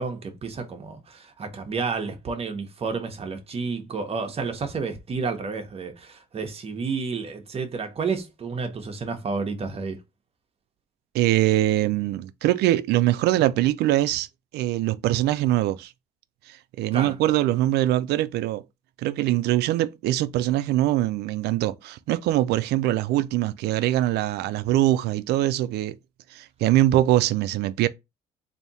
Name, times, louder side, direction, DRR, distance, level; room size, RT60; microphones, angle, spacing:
voice 1, 0.0-10.0 16.9-17.2, right 4 dB, 35° right, 0.9 m, -31 dB
voice 2, 11.1-14.3 14.5-15.9 16.5-18.6 19.0-26.0 26.3-27.9, right 14 dB, 75° right, 0.4 m, -23 dB
3.4 x 2.7 x 4.0 m
cardioid pair, 110°, 17 cm